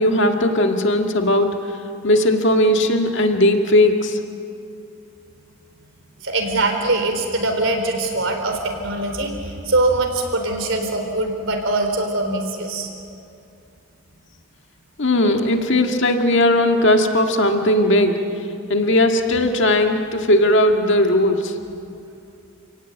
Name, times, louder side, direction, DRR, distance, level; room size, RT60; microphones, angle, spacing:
voice 1, 0.0-1.6 2.0-4.2 15.0-18.2 18.7-21.5, left 1 dB, 60° left, 4 dB, 1.9 m, -17 dB
voice 2, 6.2-12.9, right 2 dB, 65° right, 4 dB, 4.0 m, -22 dB
29.0 x 17.5 x 9.3 m, 2.6 s
head